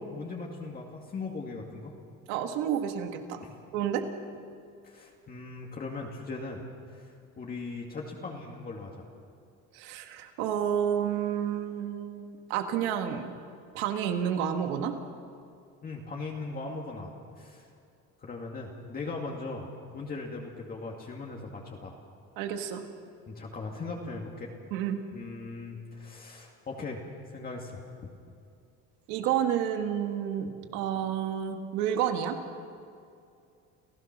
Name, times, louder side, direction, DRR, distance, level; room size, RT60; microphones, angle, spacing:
voice 1, 0.0-1.9 3.4-3.6 4.8-6.6 6.9-7.1 7.4-9.1 15.8-17.1 17.4-17.7 18.2-19.7 19.9-22.0 23.3-24.5 25.1-28.1, left 3 dB, 30° left, -1 dB, 2.3 m, -39 dB
voice 2, 2.3-3.4 3.7-4.0 9.7-13.3 13.7-15.0 22.4-22.8 24.7-25.0 29.1-32.4, right 9 dB, 90° right, 6 dB, 1.9 m, -30 dB
29.5 x 16.0 x 6.1 m, 2.4 s
cardioid pair, 130°, 30 cm